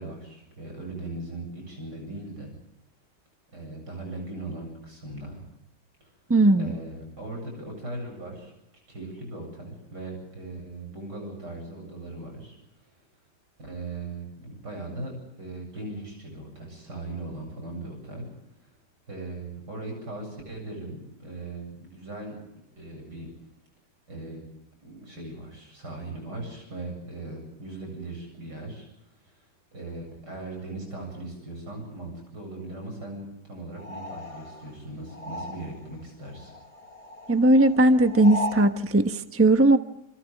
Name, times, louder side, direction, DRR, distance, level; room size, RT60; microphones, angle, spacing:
voice 1, 0.0-2.5 3.5-5.4 6.0-6.1 6.6-8.5 8.9-13.0 13.6-18.3 18.6-18.7 19.1-22.4 22.8-23.3 24.1-24.4 24.8-28.9 29.2-36.5, right 2 dB, 75° right, 2 dB, 8.6 m, -39 dB
voice 2, 6.3-6.7 37.3-39.8, right 1 dB, 10° right, 7 dB, 1.0 m, -19 dB
sound 1, 33.8-36.0 36.3-38.7, right 1 dB, 70° left, 3.4 m, -37 dB
29.0 x 28.0 x 3.7 m, 0.85 s
omnidirectional pair, 1.8 m